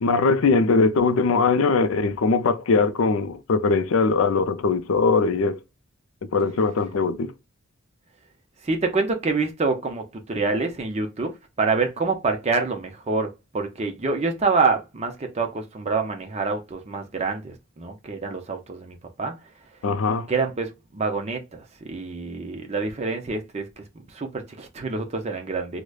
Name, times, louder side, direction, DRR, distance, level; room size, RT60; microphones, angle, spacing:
voice 1, 0.0-5.6 6.3-7.3 19.8-20.3, left 4 dB, 70° left, 0.4 m, -21 dB
voice 2, 8.6-19.4 20.3-25.8, right 4 dB, 30° right, 0.5 m, -27 dB
4.8 x 2.1 x 2.3 m
head